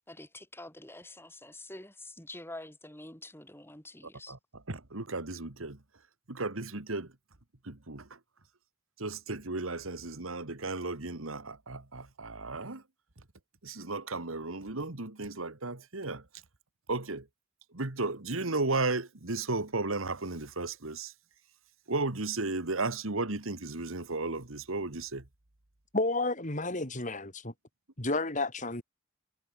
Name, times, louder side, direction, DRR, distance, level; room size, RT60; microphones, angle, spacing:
voice 1, 0.1-4.4, left 2 dB, 10° left, 5.5 m, -47 dB
voice 2, 4.7-5.8 6.3-7.1 7.6-8.1 9.0-12.8 13.6-16.2 16.9-17.3 17.7-21.1 21.9-25.2, right 3 dB, 80° right, 2.1 m, -34 dB
voice 3, 25.9-27.5 28.0-28.8, left 2 dB, 40° left, 3.8 m, -31 dB
head